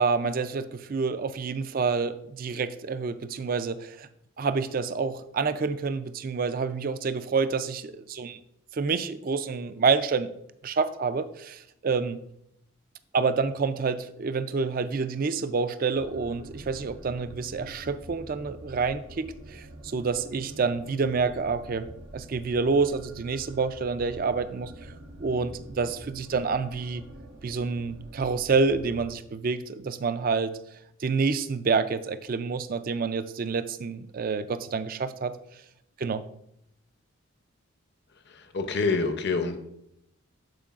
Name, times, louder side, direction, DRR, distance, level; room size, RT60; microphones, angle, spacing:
voice 1, 0.0-4.1 4.4-8.4 8.7-10.3 10.6-12.2 13.1-21.9 22.1-24.9 25.2-27.0 27.4-30.6 31.0-35.4 36.0-36.2, right 4 dB, 40° right, 12 dB, 0.3 m, -28 dB
sound 1, 15.9-29.1, right 1 dB, 55° right, 1.1 m, -46 dB
voice 2, 38.3-39.6, left 4 dB, 50° left, 7 dB, 0.6 m, -27 dB
12.5 x 4.6 x 2.4 m, 0.78 s
head